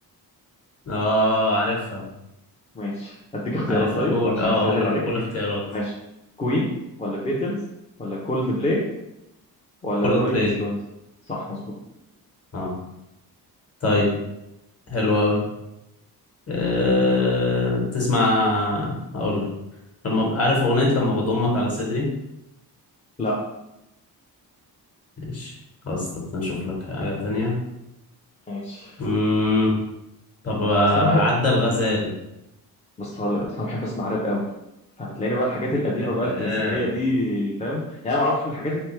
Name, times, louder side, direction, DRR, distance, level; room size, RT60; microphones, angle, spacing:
voice 1, 0.9-2.1 3.7-5.6 10.0-10.5 12.5-12.7 13.8-14.1 14.9-15.4 16.5-19.5 20.0-22.0 25.2-25.5 25.8-26.1 26.3-27.6 29.0-29.7 30.4-32.1 36.0-36.8, left 2 dB, 40° left, -2 dB, 1.1 m, -22 dB
voice 2, 2.7-5.0 5.7-5.9 6.4-6.7 7.0-7.6 8.0-8.8 9.8-10.7 11.3-11.6 23.2-23.4 28.5-28.9 30.9-31.2 33.0-34.4 35.0-38.8, left 1 dB, 20° left, -5 dB, 0.5 m, -25 dB
3.6 x 3.3 x 3.1 m, 0.88 s
wide cardioid pair, 180°, 39 cm